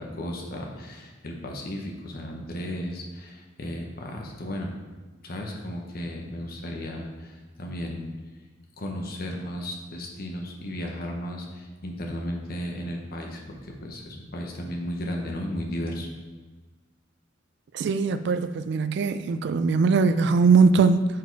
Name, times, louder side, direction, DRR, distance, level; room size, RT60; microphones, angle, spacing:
voice 1, 0.0-4.7 5.2-8.1 8.8-16.1, equal, 50° left, 1 dB, 0.9 m, -34 dB
voice 2, 17.7-21.1, right 4 dB, 60° right, 11 dB, 0.3 m, -21 dB
6.1 x 4.7 x 4.6 m, 1.3 s
head